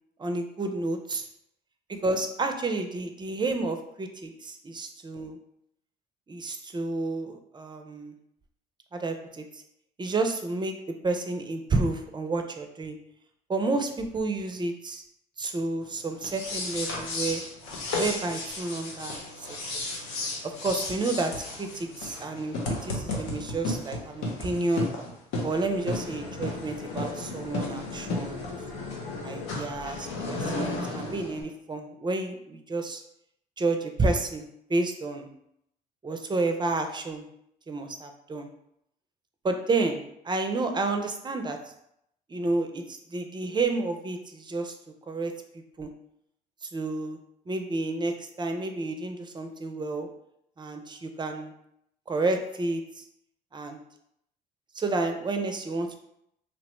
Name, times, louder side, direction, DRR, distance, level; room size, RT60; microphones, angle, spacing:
voice 1, 0.2-1.2 1.9-5.4 6.3-8.2 8.9-9.6 10.0-10.8 11.0-13.0 13.5-15.0 15.4-17.4 18.0-19.5 19.7-19.8 20.4-21.3 21.6-22.6 22.8-24.9 25.4-28.5 29.2-33.0 33.6-35.3 36.0-37.3 37.7-38.5 39.4-41.6 42.3-44.7 45.1-45.3 45.8-45.9 46.6-47.2 47.5-50.1 50.6-51.5 52.1-53.0 53.5-53.8 54.7-56.0, right 3 dB, 25° right, 5 dB, 0.4 m, -30 dB
sound 1, 16.2-31.4, left 2 dB, 85° left, 0.7 m, -34 dB
3.0 x 2.0 x 2.9 m, 0.76 s
supercardioid pair, 75°, 19 cm